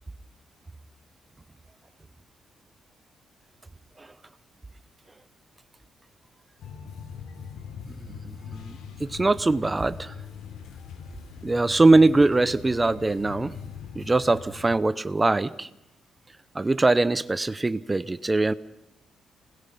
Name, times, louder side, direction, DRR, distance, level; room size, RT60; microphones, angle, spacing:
sound 1, 6.6-14.8, left 7 dB, 85° left, 3.2 m, -41 dB
voice 1, 7.9-10.2 11.4-13.5 13.9-15.7 16.5-18.5, right 2 dB, 20° right, 16 dB, 0.8 m, -22 dB
29.0 x 21.0 x 5.9 m, 0.84 s
cardioid pair, 120°, 0 cm